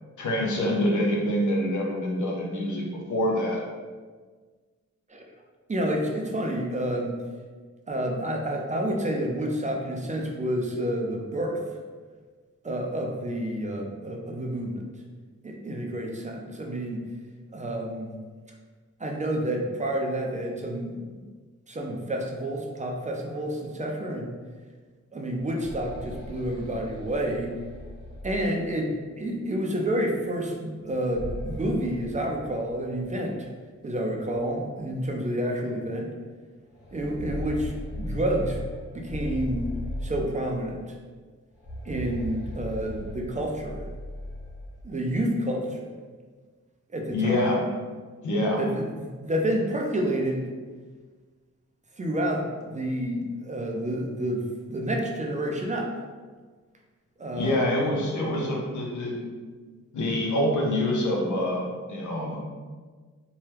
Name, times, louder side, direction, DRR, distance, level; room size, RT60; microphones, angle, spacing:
voice 1, 0.2-3.6 47.1-47.6 48.2-48.6 57.3-59.3 59.9-62.4, left 1 dB, 85° left, -2 dB, 0.7 m, -26 dB
voice 2, 5.7-7.1 7.9-11.6 12.6-14.9 15.4-17.0 17.5-18.2 19.0-21.2 21.7-24.4 25.1-27.5 28.2-33.5 33.8-36.1 36.9-38.6 38.9-39.7 40.0-40.9 41.8-43.9 44.8-45.9 46.9-47.5 48.6-50.4 52.0-55.9 57.2-57.7, right 1 dB, 25° right, 1 dB, 0.4 m, -29 dB
sound 1, 25.4-29.1 30.8-33.0 33.4-33.5 34.3-34.4 34.9-35.1 36.7-40.8 41.5-44.9, left 1 dB, 35° left, 1.2 m, -38 dB
2.8 x 2.2 x 3.2 m, 1.5 s
wide cardioid pair, 115°, 29 cm